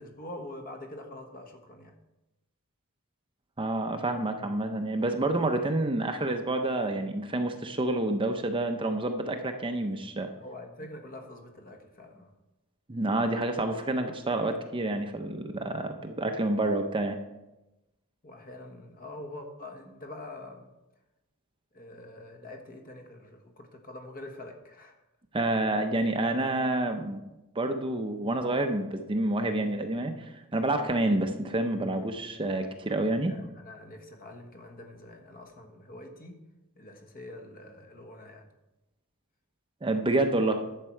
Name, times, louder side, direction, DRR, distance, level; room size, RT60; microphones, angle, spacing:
voice 1, 0.0-1.9 10.4-12.3 18.2-20.7 21.7-25.0 32.9-36.4 36.8-38.5, left 1 dB, 40° left, 4 dB, 1.4 m, -45 dB
voice 2, 3.6-10.3 12.9-17.2 25.3-27.2 27.5-33.3 39.8-40.6, right 2 dB, 25° right, 5 dB, 0.7 m, -28 dB
11.0 x 7.5 x 4.5 m, 0.99 s
head